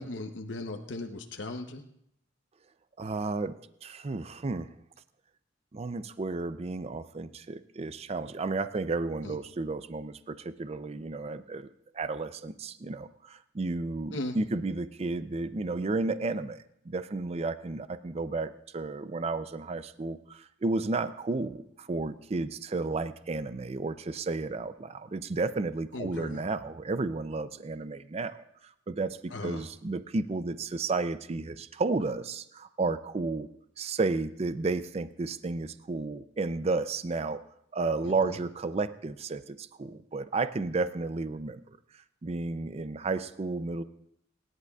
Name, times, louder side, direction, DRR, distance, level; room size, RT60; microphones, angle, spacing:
voice 1, 0.0-1.8 9.2-9.4 14.1-14.4 25.9-26.4 29.3-29.6 38.0-38.3, left 2 dB, 70° left, 5 dB, 0.8 m, -37 dB
voice 2, 3.0-3.6 3.8-4.7 5.7-11.7 11.9-28.4 28.9-33.5 33.8-37.4 37.7-41.6 42.2-43.8, right 3 dB, 35° right, 13 dB, 0.4 m, -32 dB
27.0 x 11.0 x 2.3 m, 0.77 s
head